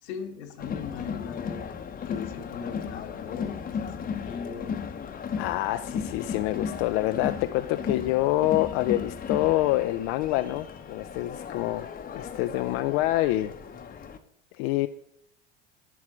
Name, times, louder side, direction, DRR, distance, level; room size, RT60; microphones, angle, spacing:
voice 1, 0.0-1.7 2.1-4.8, left 6 dB, 80° left, 5 dB, 1.3 m, -39 dB
Crowd, 0.6-14.2, left 6 dB, 25° left, 0.8 m, -35 dB
voice 2, 5.4-11.9 12.1-13.5 14.6-14.9, left 16 dB, 60° left, 9 dB, 0.5 m, -26 dB
11.0 x 3.7 x 6.0 m, 0.74 s
hypercardioid pair, 90°, 32 cm